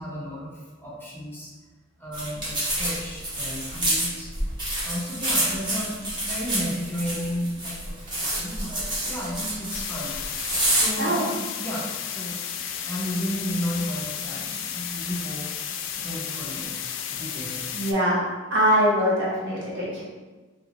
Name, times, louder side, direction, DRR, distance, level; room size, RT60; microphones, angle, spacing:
voice 1, 0.0-1.5 2.0-4.3 4.8-10.1 10.7-11.3 11.6-12.3 12.8-15.5 15.9-16.8 17.1-17.7, equal, 10° left, -6 dB, 0.7 m, -33 dB
sound 1, 2.1-10.9, right 1 dB, 25° right, 0.9 m, -28 dB
sound 2, 9.7-17.9, left 8 dB, 75° left, 0.3 m, -33 dB
voice 2, 11.0-11.3 17.7-18.2 18.5-20.0, equal, 65° right, -6 dB, 1.1 m, -22 dB
3.4 x 2.8 x 2.5 m, 1.3 s
head